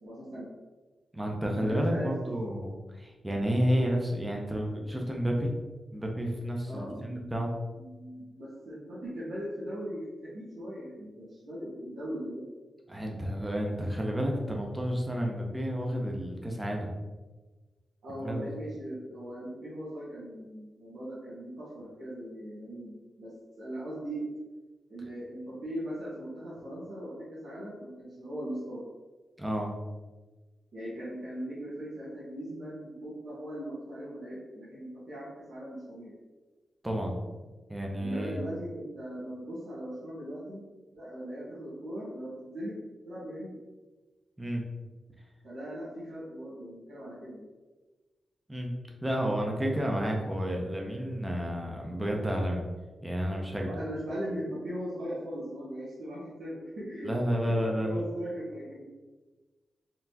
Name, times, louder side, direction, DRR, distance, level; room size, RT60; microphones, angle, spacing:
voice 1, 0.0-0.4 1.5-2.1 6.6-7.3 7.7-12.4 18.0-23.3 23.6-24.2 24.9-28.8 30.7-36.1 38.0-40.6 40.9-42.8 43.0-43.6 45.4-47.5 53.7-57.1 57.4-57.5 57.8-58.8, equal, 75° right, -10 dB, 1.2 m, -39 dB
voice 2, 1.1-5.5 5.9-7.5 12.9-16.9 18.2-18.5 29.4-29.7 36.8-37.1 37.7-38.4 44.4-44.6 48.5-48.7 49.0-52.6 53.0-53.8 57.0-58.0, equal, 10° right, 0 dB, 0.5 m, -31 dB
4.0 x 3.2 x 2.8 m, 1.3 s
wide cardioid pair, 170°, 0 cm